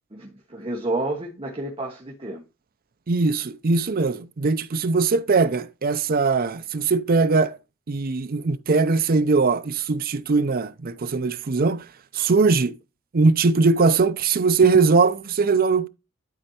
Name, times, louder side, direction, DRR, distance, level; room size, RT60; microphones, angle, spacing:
voice 1, 0.1-2.4, right 2 dB, 25° right, 1.4 m, -30 dB
voice 2, 3.1-7.6 7.9-11.8 12.1-12.8 13.1-15.9, right 4 dB, 45° right, 0.5 m, -20 dB
12.0 x 4.3 x 2.9 m
head